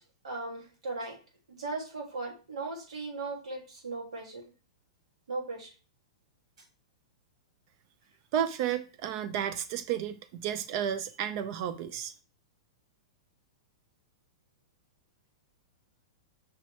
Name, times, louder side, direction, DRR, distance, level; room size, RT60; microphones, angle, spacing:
voice 1, 0.2-1.2 1.6-4.4 5.3-5.7, right 3 dB, 85° right, 1.7 m, -37 dB
voice 2, 8.3-12.1, right 9 dB, 45° right, 0.4 m, -32 dB
5.5 x 2.8 x 3.1 m
hypercardioid pair, 140°, 3 cm